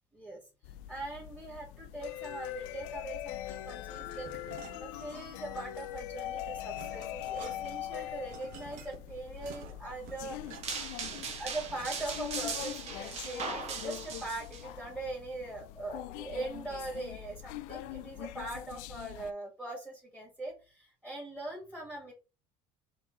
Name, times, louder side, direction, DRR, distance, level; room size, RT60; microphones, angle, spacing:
voice 1, 0.1-4.3 4.8-10.4 11.4-22.1, right 2 dB, 5° right, -3 dB, 1.7 m, -41 dB
sound 1, 0.6-19.3, left 13 dB, 80° left, 0.4 m, -42 dB
sound 2, 3.9-5.6 5.9-12.9, right 7 dB, 75° right, 1.0 m, -52 dB
sound 3, 10.6-14.6, right 6 dB, 50° right, 1.1 m, -39 dB
3.9 x 3.0 x 3.6 m, 0.32 s
cardioid pair, 125°, 14 cm